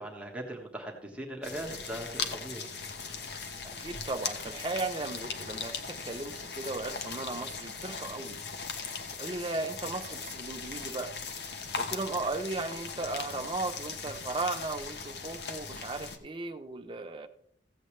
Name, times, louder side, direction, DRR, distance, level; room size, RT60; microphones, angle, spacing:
voice 1, 0.0-2.6, right 1 dB, 5° right, 0 dB, 1.4 m, -39 dB
sound 1, 1.4-16.2, left 5 dB, 65° left, 1.1 m, -39 dB
voice 2, 3.8-8.4 9.2-11.1 11.8-17.3, right 3 dB, 30° right, 6 dB, 0.7 m, -36 dB
15.0 x 8.1 x 3.3 m, 0.70 s
head